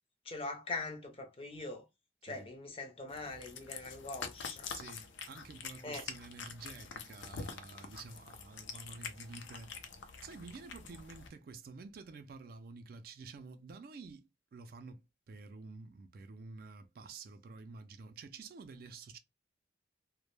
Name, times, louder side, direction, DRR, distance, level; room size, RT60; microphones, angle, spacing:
voice 1, 0.3-1.8 2.2-4.7 5.8-6.0, left 3 dB, 30° left, 0.6 m, -42 dB
Cat, 3.1-11.3, left 5 dB, 80° left, 0.4 m, -46 dB
voice 2, 4.7-10.0 10.2-19.2, right 4 dB, 55° right, 0.3 m, -50 dB
2.1 x 2.0 x 3.0 m
head